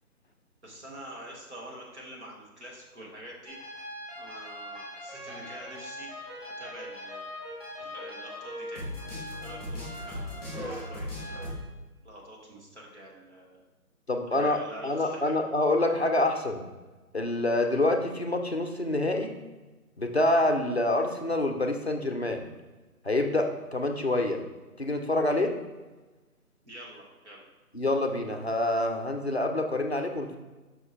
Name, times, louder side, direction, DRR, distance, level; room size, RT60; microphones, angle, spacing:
voice 1, 0.6-3.6 4.2-6.1 6.5-7.2 7.8-8.9 9.4-11.1 11.3-11.5 12.0-13.6 14.3-15.4 26.6-27.4, right 1 dB, 50° right, -2 dB, 1.6 m, -46 dB
sound 1, 3.5-11.5, left 1 dB, 5° right, 2.0 m, -39 dB
voice 2, 14.1-16.6 17.1-19.4 20.0-22.4 23.0-24.4 24.8-25.6 27.7-30.4, left 2 dB, 45° left, 4 dB, 0.5 m, -27 dB
5.7 x 5.6 x 3.1 m, 1.2 s
figure-of-eight pair, 180°, 45 cm